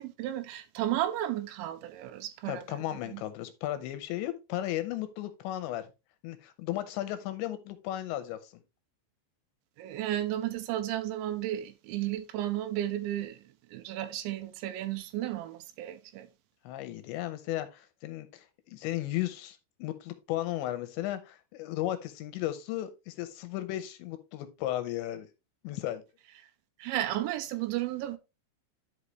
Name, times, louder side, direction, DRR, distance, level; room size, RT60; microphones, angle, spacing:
voice 1, 0.0-2.8 3.1-3.2 9.8-13.4 13.7-16.3 26.8-28.2, right 13 dB, 80° right, 2.8 m, -33 dB
voice 2, 2.5-5.9 6.2-8.6 16.6-25.3 25.6-26.0, left 14 dB, 80° left, 2.9 m, -35 dB
11.0 x 5.5 x 3.1 m
omnidirectional pair, 5.6 m